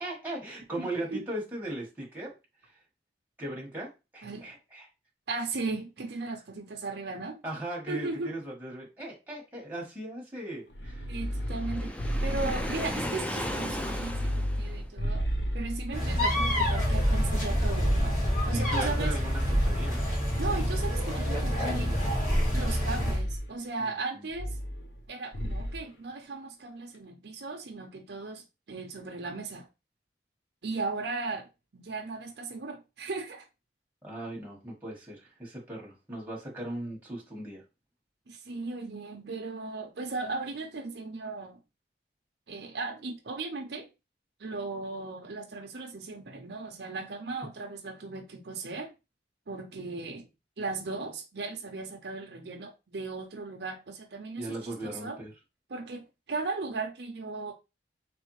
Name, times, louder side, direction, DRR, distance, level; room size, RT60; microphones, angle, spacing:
voice 1, 0.0-2.3 2.6-2.7 3.4-4.9 7.4-11.1 18.5-20.0 23.8-23.9 34.0-37.6 54.4-55.3, right 1 dB, 10° right, 1.4 m, -38 dB
voice 2, 0.8-1.2 4.2-4.5 5.3-7.4 7.9-8.3 11.1-11.9 12.2-15.2 15.5-18.2 18.5-19.2 20.4-21.9 22.5-24.6 25.1-29.7 30.6-31.5 31.7-33.5 38.3-41.6 42.5-43.9 44.4-48.9 49.5-50.3 50.6-55.2 55.7-57.5, right 3 dB, 65° right, 0.6 m, -37 dB
sound 1, 10.7-13.2 13.6-16.1 16.5-18.7 19.2-21.1 21.7-22.7 23.0-23.5 24.3-25.1 25.3-25.8, equal, 65° left, 0.7 m, -33 dB
Waves surf, 11.4-14.9, equal, 5° left, 0.4 m, -35 dB
sound 2, 15.9-23.2, equal, 45° left, 2.3 m, -27 dB
3.4 x 3.4 x 3.1 m
head